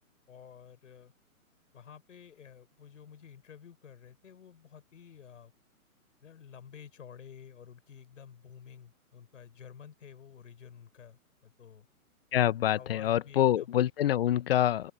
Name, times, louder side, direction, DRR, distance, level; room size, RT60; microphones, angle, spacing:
voice 1, 0.3-1.1 1.7-5.5 6.2-11.9 12.7-13.8, left 7 dB, 60° left, 6.9 m, -51 dB
voice 2, 12.3-14.9, left 12 dB, 40° left, 1.4 m, -26 dB
open air
figure-of-eight pair, 135°, 43 cm